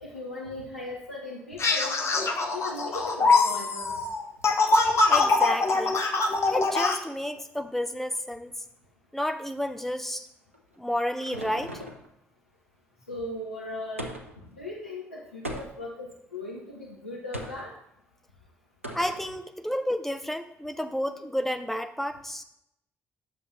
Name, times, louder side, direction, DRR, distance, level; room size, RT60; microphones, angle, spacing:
voice 1, 0.0-2.0 2.5-4.0 13.1-14.1 14.5-17.7, left 2 dB, 85° left, -5 dB, 0.7 m, -38 dB
sound 1, 1.6-7.0, left 3 dB, 40° left, 1.1 m, -23 dB
voice 2, 5.1-6.0 6.5-8.5 9.1-10.3 10.8-11.8 18.9-22.4, equal, 5° left, 8 dB, 0.7 m, -31 dB
sound 2, 10.5-12.1 14.0-14.5 15.4-16.0 17.3-17.7 18.8-19.3, equal, 90° right, 0.5 m, -38 dB
9.3 x 6.9 x 3.1 m, 0.76 s
figure-of-eight pair, 40°, 7 cm